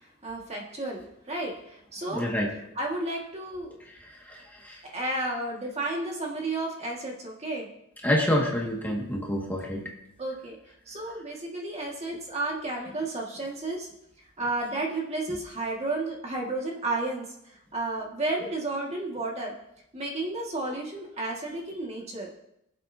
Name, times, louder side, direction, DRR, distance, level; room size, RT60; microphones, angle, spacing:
voice 1, 0.2-2.2 2.8-3.8 4.8-7.7 10.2-10.6 10.9-13.9 14.4-17.2 17.7-19.5 19.9-22.4, right 2 dB, 30° right, -1 dB, 1.9 m, -32 dB
voice 2, 2.1-2.5 4.3-4.8 8.0-9.8, equal, 10° left, -2 dB, 1.9 m, -27 dB
23.0 x 7.7 x 2.8 m, 0.81 s
head